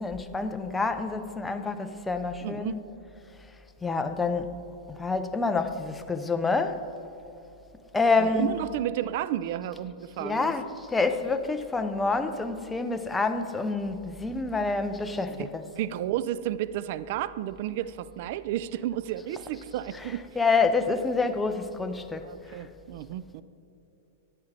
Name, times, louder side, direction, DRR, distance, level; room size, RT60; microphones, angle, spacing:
voice 1, 0.0-2.8 3.8-4.5 4.9-6.8 7.9-8.5 10.2-15.6 20.4-22.3, left 4 dB, 10° left, 0.5 m, -27 dB
voice 2, 2.4-2.8 8.2-10.5 15.3-15.5 15.8-20.2 22.2-23.4, right 12 dB, 55° right, 0.3 m, -32 dB
10.5 x 8.7 x 3.3 m
hypercardioid pair, 135°, 0 cm